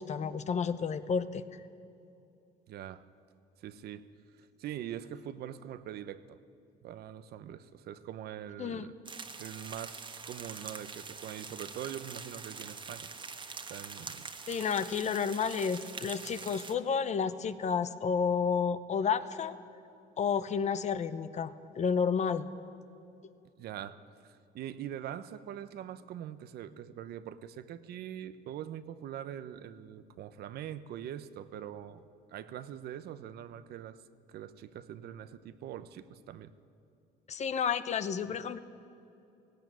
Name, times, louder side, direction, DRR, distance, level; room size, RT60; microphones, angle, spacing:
voice 1, 0.0-1.4 8.6-8.9 14.5-19.5 20.2-22.4 37.3-38.6, left 6 dB, 45° left, 13 dB, 1.0 m, -31 dB
voice 2, 2.7-3.0 3.6-4.0 4.4-6.4 6.8-8.9 9.4-13.1 13.7-14.3 23.6-32.0 32.3-34.0 34.3-36.5, right 10 dB, 70° right, 13 dB, 0.9 m, -43 dB
sound 1, 9.1-16.7, right 5 dB, 30° right, 1.4 m, -44 dB
17.0 x 16.5 x 9.3 m, 2.6 s
cardioid pair, 110°, 17 cm